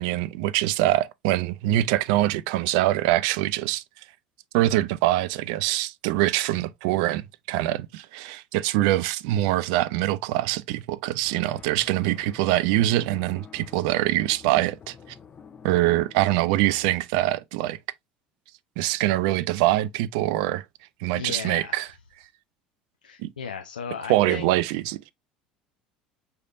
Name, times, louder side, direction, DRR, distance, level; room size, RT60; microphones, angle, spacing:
voice 1, 0.0-3.8 4.5-14.9 15.6-17.8 18.8-20.6 21.0-21.9 23.2-23.3 24.1-25.0, right 15 dB, 65° right, 0.4 m, -24 dB
sound 1, 11.2-17.0, left 6 dB, 30° left, 0.8 m, -49 dB
voice 2, 21.1-21.9 23.0-24.8, left 6 dB, 85° left, 0.4 m, -36 dB
6.5 x 3.3 x 2.3 m
figure-of-eight pair, 65°, 4 cm